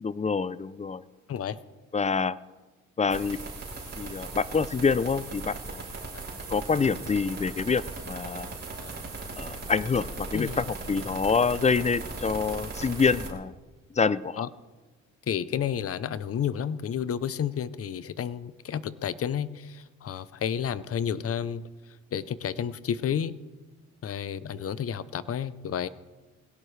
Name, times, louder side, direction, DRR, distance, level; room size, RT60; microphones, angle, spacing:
voice 1, 0.0-1.0 1.9-2.4 3.0-3.4 4.0-5.8 6.5-8.5 9.4-13.5 13.9-14.4, left 5 dB, 25° left, 18 dB, 0.5 m, -26 dB
sound 1, 3.1-13.3, right 3 dB, 35° right, 6.0 m, -38 dB
voice 2, 15.3-21.6 22.1-23.4 24.0-25.9, left 8 dB, 50° left, 16 dB, 0.8 m, -31 dB
21.0 x 17.5 x 3.3 m, 1.2 s
cardioid pair, 90°, 30 cm